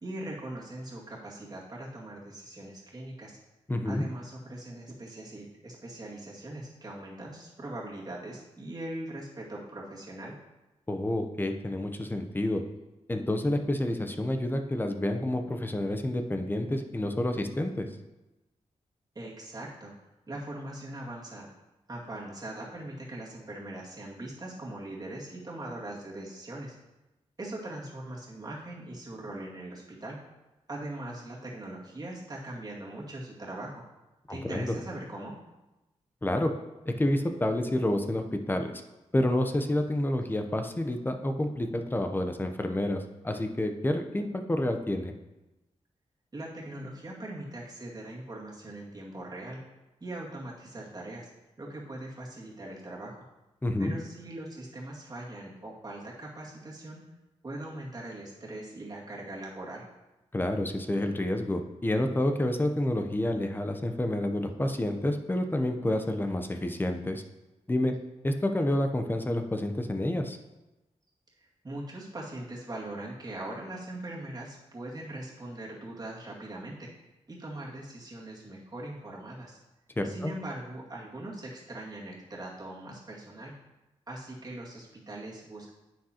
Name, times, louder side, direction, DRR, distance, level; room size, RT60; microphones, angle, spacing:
voice 1, 0.0-3.4 3.8-10.3 19.1-19.9 20.3-21.5 21.9-26.7 27.4-30.2 30.7-33.8 34.3-35.4 46.3-49.6 50.0-51.3 51.6-53.2 53.8-57.0 57.4-59.9 71.6-76.9 77.3-79.6 80.0-83.5 84.1-85.7, right 1 dB, 30° right, -5 dB, 2.2 m, -41 dB
voice 2, 3.7-4.1 10.9-12.6 13.1-17.9 34.3-34.7 36.2-36.5 36.9-38.7 39.1-45.1 53.6-54.0 60.3-67.2 67.7-67.9 68.2-70.4 80.0-80.3, left 1 dB, 15° left, 5 dB, 0.7 m, -29 dB
9.6 x 6.2 x 2.9 m, 1.0 s
wide cardioid pair, 90°, 12 cm